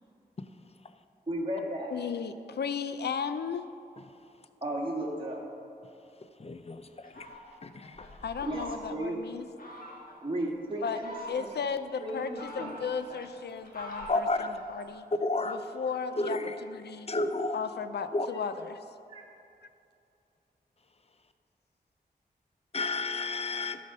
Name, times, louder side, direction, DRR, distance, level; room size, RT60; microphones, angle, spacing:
voice 1, 1.3-1.9 4.6-5.4 8.4-9.2 10.2-11.1 11.4-11.5 12.0-12.8 19.1-19.2, right 1 dB, 30° right, -3 dB, 2.0 m, -34 dB
voice 2, 1.9-3.7 8.2-9.5 10.8-11.0 11.3-15.1 15.4-17.1 17.5-18.8, left 6 dB, 90° left, 11 dB, 0.5 m, -35 dB
voice 3, 6.4-6.8 7.2-7.3 7.6-7.9 14.1-14.5 15.2-15.6 16.2-16.5 17.1-17.6 18.1-18.3 22.7-23.8, left 2 dB, 40° left, 9 dB, 0.6 m, -30 dB
Fowl, 7.0-9.1 9.6-10.2 10.8-11.7 12.1-14.9, equal, 60° left, 1.6 m, -45 dB
12.0 x 5.1 x 5.4 m, 2.6 s
wide cardioid pair, 60°, 17 cm